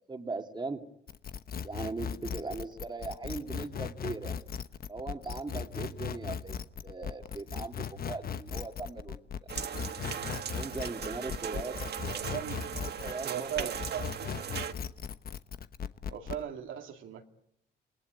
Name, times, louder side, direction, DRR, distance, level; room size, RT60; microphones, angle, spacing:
voice 1, 0.1-0.8 1.6-4.3 4.9-6.6 6.8-9.5 10.6-11.8 12.1-12.3 12.8-13.7, right 3 dB, 20° right, 2.5 m, -39 dB
sound 1, 1.1-13.2 13.6-16.4, left 7 dB, 50° left, 1.1 m, -38 dB
sound 2, 9.5-14.7, right 8 dB, 55° right, 1.5 m, -38 dB
voice 2, 12.0-12.6 13.2-14.3 16.1-17.2, right 9 dB, 80° right, 2.4 m, -38 dB
28.0 x 19.0 x 9.6 m
cardioid pair, 90°, 20 cm